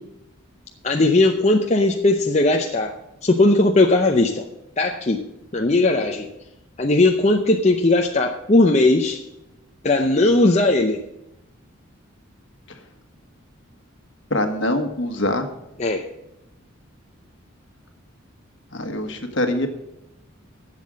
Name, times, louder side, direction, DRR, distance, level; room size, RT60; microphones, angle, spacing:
voice 1, 0.8-2.9 3.2-4.5 4.8-5.2 5.5-6.3 6.8-9.2 9.8-11.0 15.8-16.0, left 2 dB, 30° left, 2 dB, 0.7 m, -18 dB
voice 2, 14.3-15.5 18.7-19.7, left 1 dB, 60° left, 6 dB, 1.5 m, -23 dB
11.5 x 7.6 x 6.2 m, 0.90 s
head